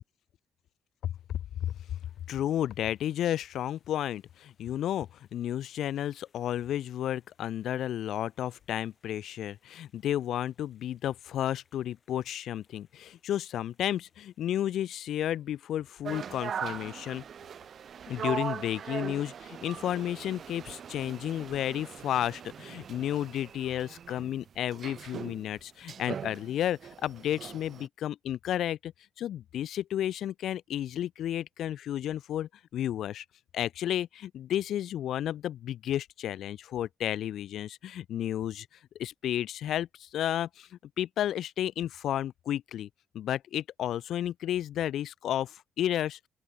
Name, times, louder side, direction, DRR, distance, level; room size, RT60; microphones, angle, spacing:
voice 1, 1.0-1.7 2.3-17.2 18.1-28.9 29.2-33.2 33.5-38.7 39.0-42.9 43.1-46.2, left 11 dB, 75° left, 0.3 m, -32 dB
sound 1, 1.6-20.9, left 5 dB, 40° left, 6.5 m, -74 dB
sound 2, 16.0-27.9, right 8 dB, 55° right, 0.8 m, -40 dB
open air
cardioid pair, 90°, 0 cm